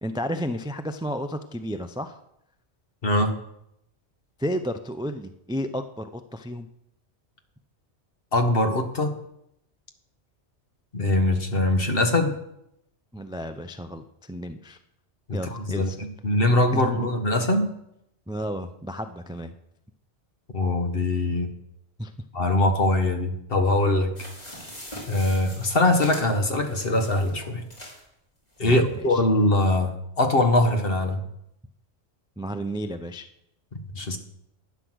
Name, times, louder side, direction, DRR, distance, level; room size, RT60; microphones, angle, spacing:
voice 1, 0.0-2.2 4.4-6.7 13.1-14.8 15.3-16.0 16.7-17.1 18.3-19.5 22.0-22.1 28.6-29.2 32.4-33.3, equal, 5° right, 9 dB, 0.4 m, -32 dB
voice 2, 3.0-3.3 8.3-9.1 10.9-12.4 15.3-15.9 16.2-17.7 20.5-21.5 22.3-24.1 25.1-27.6 28.6-31.2 33.9-34.2, left 2 dB, 55° left, 6 dB, 1.7 m, -22 dB
sound 1, 24.2-28.1 28.6-28.7 28.9-29.0, equal, 35° left, 3.6 m, -42 dB
11.5 x 9.7 x 6.3 m, 0.79 s
omnidirectional pair, 1.2 m